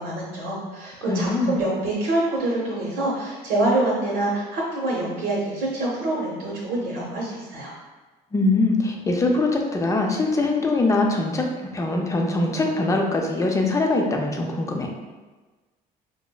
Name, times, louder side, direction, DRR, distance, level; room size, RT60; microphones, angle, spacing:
voice 1, 0.0-7.7, right 2 dB, 85° right, -6 dB, 0.9 m, -26 dB
voice 2, 1.0-1.6 8.3-14.9, left 2 dB, 20° left, 1 dB, 0.4 m, -22 dB
4.9 x 2.0 x 2.2 m, 1.3 s
cardioid pair, 110°, 17 cm